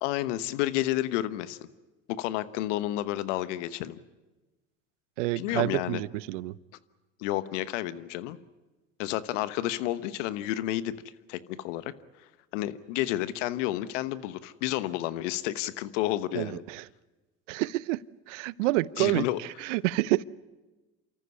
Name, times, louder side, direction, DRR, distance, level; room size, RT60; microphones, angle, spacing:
voice 1, 0.0-1.6 2.1-4.0 5.4-6.0 7.2-8.4 9.0-11.0 11.3-11.9 12.5-16.6 19.0-19.4, left 14 dB, 80° left, 15 dB, 1.1 m, -30 dB
voice 2, 5.2-6.6 16.3-16.8 17.5-18.0 18.3-20.2, right 18 dB, 80° right, 21 dB, 0.7 m, -28 dB
28.5 x 14.0 x 9.7 m, 1.2 s
hypercardioid pair, 80°, 36 cm